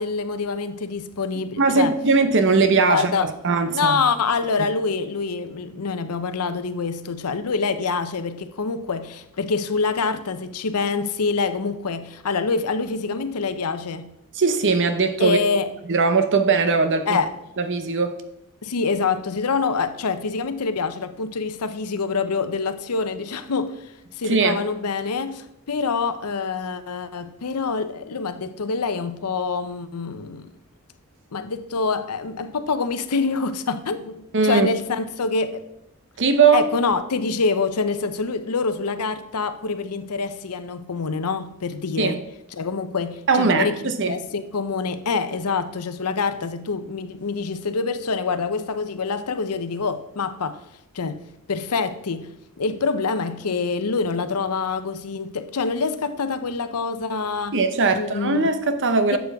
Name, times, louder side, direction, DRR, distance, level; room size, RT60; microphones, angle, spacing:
voice 1, 0.0-2.0 2.6-3.3 3.7-14.1 15.2-15.7 17.1-17.3 18.6-30.5 31.3-35.6 36.5-42.2 42.5-50.6 50.9-51.2 51.5-57.6 57.9-58.5 59.1-59.2, left 4 dB, 85° left, 0.7 m, -26 dB
voice 2, 1.6-4.0 4.6-4.7 14.4-15.4 15.9-17.2 17.6-18.2 24.3-24.6 34.3-34.7 36.2-36.7 42.0-42.1 43.3-44.1 57.5-59.2, right 4 dB, 55° right, 0.9 m, -20 dB
11.5 x 7.3 x 3.5 m
head